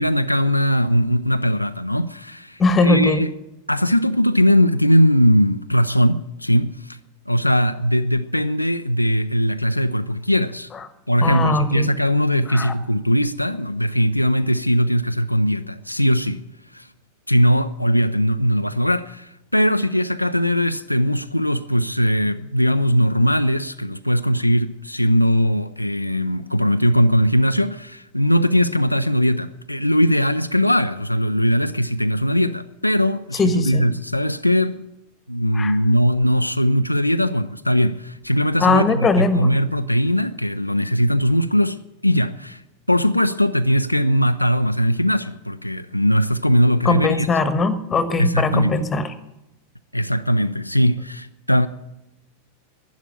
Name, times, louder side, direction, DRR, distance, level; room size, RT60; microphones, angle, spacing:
voice 1, 0.0-3.3 3.7-7.0 7.3-10.7 11.1-16.4 16.7-16.9 17.3-34.8 35.3-42.6 42.9-47.3 48.2-48.8 49.9-51.7, equal, 90° left, 0.4 m, -20 dB
voice 2, 2.6-3.2 11.2-11.9 12.5-12.7 33.3-33.8 35.5-35.8 38.6-39.5 46.8-49.1, left 3 dB, 20° left, 1.3 m, -20 dB
11.5 x 10.5 x 9.9 m
figure-of-eight pair, 90°, 0 cm